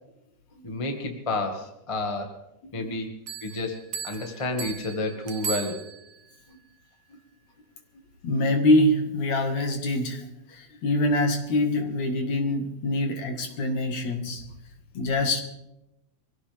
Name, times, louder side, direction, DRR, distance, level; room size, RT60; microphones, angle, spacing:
voice 1, 0.6-2.3 2.7-3.1 3.4-3.8 4.0-5.8, left 2 dB, 15° left, 3 dB, 1.2 m, -30 dB
Bell, 3.3-6.3, right 7 dB, 65° right, 2.0 m, -37 dB
voice 2, 8.2-10.2 10.5-14.4 14.9-15.4, left 1 dB, 65° left, 4 dB, 3.0 m, -24 dB
24.0 x 16.5 x 3.5 m, 0.88 s
omnidirectional pair, 3.6 m